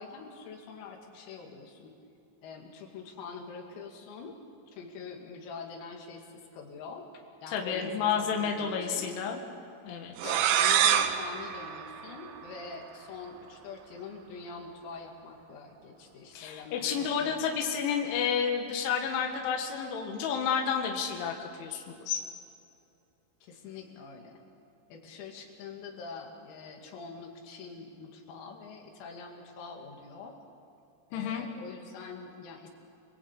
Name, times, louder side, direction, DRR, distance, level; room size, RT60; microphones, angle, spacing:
voice 1, 0.0-1.9 2.4-4.4 4.7-9.1 10.2-17.4 23.4-24.4 24.9-30.4 31.1-32.7, left 5 dB, 90° left, 2 dB, 5.3 m, -44 dB
voice 2, 7.5-9.4 9.8-10.3 16.3-22.2 31.1-31.5, left 7 dB, 70° left, 1 dB, 4.1 m, -31 dB
sound 1, 10.2-12.8, right 10 dB, 75° right, 3.1 m, -27 dB
29.5 x 22.0 x 8.4 m, 2.7 s
omnidirectional pair, 5.9 m